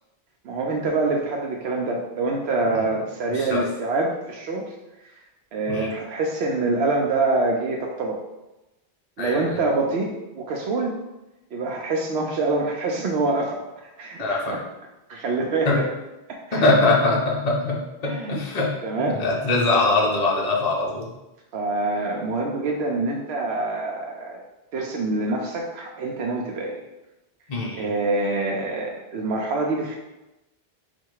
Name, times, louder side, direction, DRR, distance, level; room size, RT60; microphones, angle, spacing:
voice 1, 0.4-4.7 5.5-8.2 9.2-11.0 11.5-14.6 15.1-15.9 16.3-16.8 18.0-18.4 18.8-19.2 21.5-24.4 24.7-26.8 27.8-30.0, right 3 dB, 90° right, -1 dB, 0.8 m, -25 dB
voice 2, 3.3-3.6 5.7-5.9 9.2-9.6 14.2-14.5 15.6-15.8 16.5-18.7 19.0-21.1 27.5-27.9, left 2 dB, 40° left, -3 dB, 0.9 m, -22 dB
4.3 x 2.3 x 4.6 m, 1.0 s
omnidirectional pair, 1.0 m